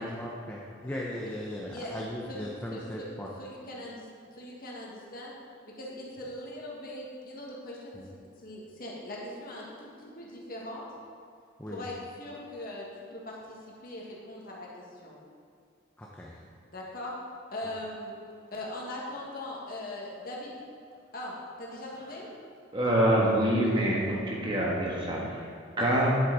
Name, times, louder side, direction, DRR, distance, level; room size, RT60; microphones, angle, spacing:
voice 1, 0.0-3.3 7.9-8.1 11.6-11.9 16.0-16.4, left 1 dB, 10° left, -3 dB, 0.7 m, -38 dB
voice 2, 2.7-3.1 3.4-4.1 4.3-5.3 5.8-8.0 8.4-10.9 11.7-15.2 16.7-17.1 17.5-18.2 18.5-20.5 21.1-22.3 25.8-26.1, left 1 dB, 45° left, -4 dB, 1.8 m, -40 dB
voice 3, 22.7-26.2, right 1 dB, 25° right, -4 dB, 1.5 m, -26 dB
9.9 x 8.1 x 4.0 m, 2.4 s
head